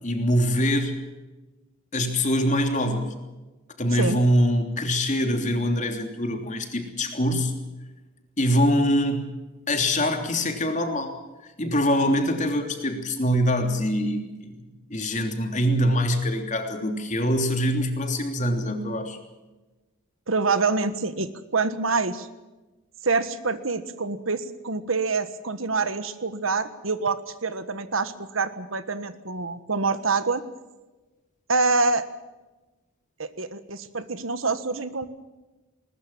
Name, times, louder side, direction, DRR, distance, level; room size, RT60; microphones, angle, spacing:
voice 1, 0.0-1.0 1.9-3.1 3.8-7.6 8.4-9.4 9.7-19.2, equal, 35° left, 5 dB, 3.2 m, -24 dB
voice 2, 20.3-22.3 23.0-30.4 31.5-32.0 33.2-35.1, right 4 dB, 80° right, 12 dB, 1.5 m, -26 dB
20.5 x 20.0 x 7.5 m, 1.1 s
head